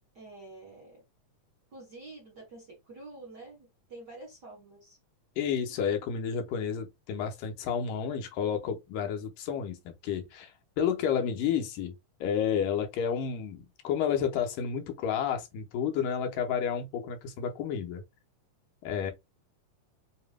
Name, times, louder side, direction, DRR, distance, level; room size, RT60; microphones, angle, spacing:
voice 1, 0.1-1.0 1.7-5.0, right 2 dB, 50° right, 1.2 m, -48 dB
voice 2, 5.4-10.5 10.8-12.0 12.2-18.0 18.8-19.1, left 7 dB, 85° left, 2.5 m, -31 dB
7.1 x 2.9 x 2.2 m
omnidirectional pair, 3.9 m